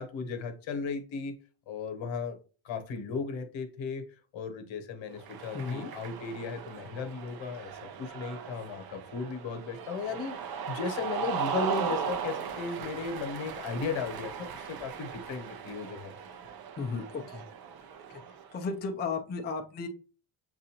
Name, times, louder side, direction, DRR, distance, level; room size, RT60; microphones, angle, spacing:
voice 1, 0.0-1.4 1.7-2.4 2.6-16.1, left 5 dB, 85° left, 6 dB, 1.0 m, -36 dB
Cheering, 5.2-18.6, right 7 dB, 55° right, 0.6 m, -38 dB
voice 2, 5.5-5.9 16.8-17.4 18.5-19.9, left 4 dB, 25° left, 2 dB, 0.4 m, -34 dB
7.4 x 2.5 x 2.8 m, 0.37 s
cardioid pair, 155°, 45 cm